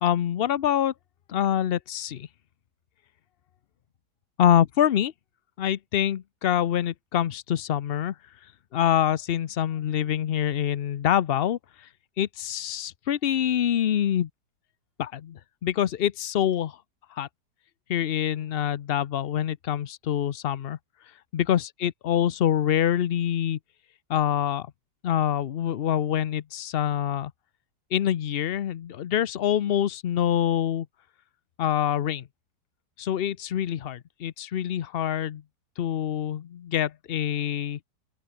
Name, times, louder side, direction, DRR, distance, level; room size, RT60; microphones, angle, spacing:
voice 1, 0.0-0.9 1.3-2.3 4.4-5.1 5.6-8.1 8.7-11.9 12.2-14.3 15.0-16.8 17.1-17.3 17.9-20.8 21.3-23.6 24.1-24.7 25.0-27.3 27.9-30.9 31.6-32.2 33.0-35.4 35.8-37.8, left 10 dB, 80° left, 0.5 m, -25 dB
open air
omnidirectional pair, 1.9 m